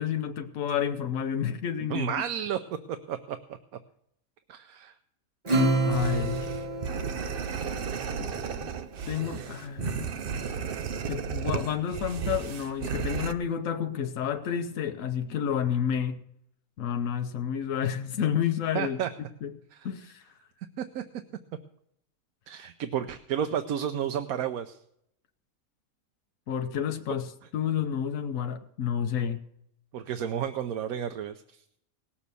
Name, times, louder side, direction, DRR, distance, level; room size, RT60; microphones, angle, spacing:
voice 1, 0.0-2.1 5.8-6.5 8.2-8.4 8.6-8.7 9.1-10.7 11.1-16.2 16.8-19.0 19.4-19.5 19.8-20.2 26.5-29.4, left 8 dB, 70° left, 1.1 m, -30 dB
voice 2, 1.9-2.6 2.9-3.4 4.5-4.9 18.7-19.1 19.7-19.9 20.8-21.0 22.5-24.8 29.9-31.6, right 9 dB, 80° right, 1.1 m, -31 dB
Acoustic guitar / Strum, 5.4-8.4, right 2 dB, 30° right, 1.4 m, -28 dB
sound 1, 5.9-13.3, right 7 dB, 55° right, 0.7 m, -34 dB
18.0 x 7.2 x 6.8 m
omnidirectional pair, 1.5 m